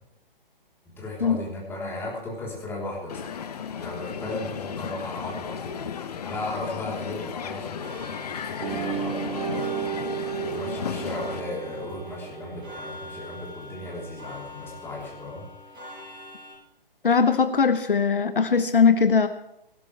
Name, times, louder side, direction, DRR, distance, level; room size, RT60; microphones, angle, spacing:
voice 1, 1.0-3.3 3.7-9.4 10.4-15.4, left 2 dB, 10° left, -3 dB, 3.7 m, -36 dB
Crowd, 3.1-11.4, left 7 dB, 45° left, 1.1 m, -35 dB
Clock, 7.8-16.5, left 1 dB, 15° right, 7.5 m, -43 dB
sound 1, 8.6-13.3, right 8 dB, 60° right, 4.3 m, -33 dB
voice 2, 17.0-19.3, left 5 dB, 65° left, 10 dB, 1.1 m, -20 dB
17.5 x 16.0 x 3.4 m, 0.83 s
figure-of-eight pair, 135°, 29 cm